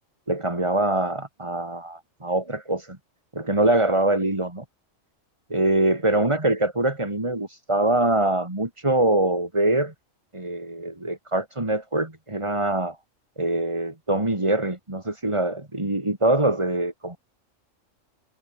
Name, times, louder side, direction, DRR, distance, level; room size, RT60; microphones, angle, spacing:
voice 1, 0.3-3.0 3.3-4.6 5.5-9.9 10.3-13.0 13.4-17.2, right 2 dB, 20° right, 2.9 m, -24 dB
omnidirectional pair, 1.3 m